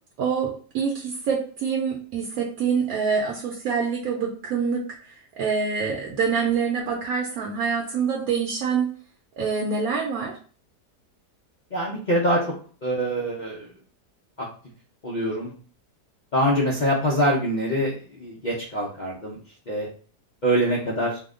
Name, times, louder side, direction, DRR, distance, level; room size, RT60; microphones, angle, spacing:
voice 1, 0.2-8.9 9.4-10.4, right 6 dB, 70° right, 0 dB, 1.0 m, -26 dB
voice 2, 11.7-12.4 12.8-13.7 15.0-15.5 16.3-19.4 19.7-19.9 20.4-21.2, equal, 90° left, -4 dB, 0.4 m, -24 dB
2.8 x 2.1 x 3.6 m, 0.42 s
omnidirectional pair, 1.7 m